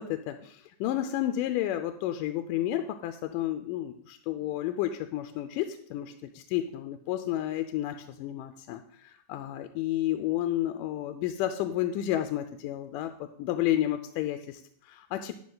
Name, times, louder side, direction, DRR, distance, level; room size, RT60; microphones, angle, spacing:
voice 1, 0.0-13.1 13.4-15.4, left 12 dB, 85° left, 7 dB, 2.2 m, -31 dB
10.5 x 9.5 x 4.0 m, 0.63 s
omnidirectional pair, 3.8 m